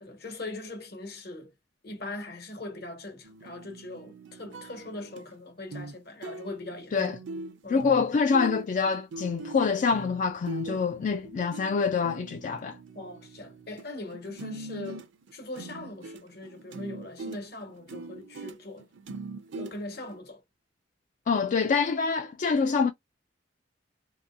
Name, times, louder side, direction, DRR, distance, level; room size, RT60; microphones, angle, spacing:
voice 1, 0.0-1.5 1.8-7.0 7.6-7.9 10.6-10.8 12.9-15.1 15.3-18.9 19.6-20.4, left 2 dB, 60° left, 1.1 m, -41 dB
sound 1, 3.2-5.3 5.7-6.0 6.2-13.8 14.1-20.2, right 2 dB, 75° right, 0.6 m, -41 dB
voice 2, 7.7-12.8 21.3-22.9, left 5 dB, 40° left, 0.3 m, -26 dB
2.9 x 2.8 x 2.4 m
head